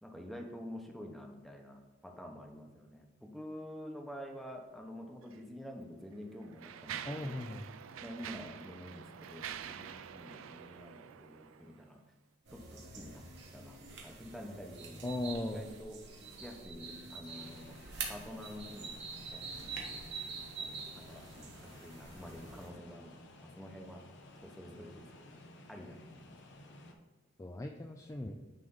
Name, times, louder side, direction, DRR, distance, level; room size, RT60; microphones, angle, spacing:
voice 1, 0.0-7.4 8.0-12.0 12.5-13.2 13.5-15.2 15.4-16.0 16.4-17.8 18.1-19.0 19.3-20.0 20.6-23.2 23.4-24.0 24.4-25.3 25.7-26.3, equal, ahead, 1 dB, 0.8 m, -48 dB
Mechanisms, 5.2-5.4 6.1-11.9, right 8 dB, 90° right, 0.4 m, -46 dB
voice 2, 7.1-7.7 15.0-15.7 27.4-28.3, left 1 dB, 15° left, 3 dB, 0.4 m, -38 dB
sound 1, 12.5-22.7, right 5 dB, 60° right, 1.3 m, -46 dB
sound 2, 17.3-26.9, left 1 dB, 65° left, 0.8 m, -55 dB
9.3 x 3.3 x 3.9 m, 1.3 s
head